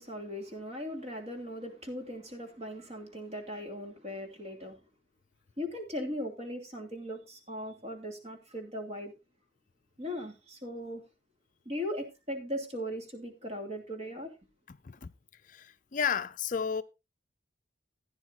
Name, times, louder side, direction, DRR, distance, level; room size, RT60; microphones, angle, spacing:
voice 1, 0.0-4.8 5.6-9.1 10.0-11.0 11.6-14.3, equal, 35° right, 2.7 m, -38 dB
voice 2, 14.7-15.1 15.4-16.8, left 7 dB, 40° left, 0.5 m, -33 dB
15.5 x 9.5 x 2.8 m
head